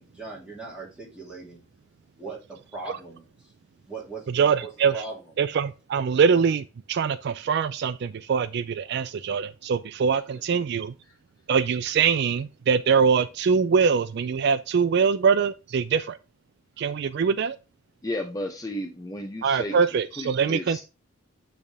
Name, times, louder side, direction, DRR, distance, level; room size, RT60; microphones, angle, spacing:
voice 1, 0.0-1.6 2.2-2.4 2.7-3.3 3.9-5.2, right 3 dB, 5° right, 2.6 m, -39 dB
voice 2, 4.3-5.0 5.4-10.9 11.5-16.2 16.8-17.6 19.4-20.8, right 6 dB, 55° right, 0.3 m, -23 dB
voice 3, 18.0-19.8 20.2-20.8, left 1 dB, 20° left, 0.7 m, -33 dB
8.6 x 3.5 x 3.4 m
head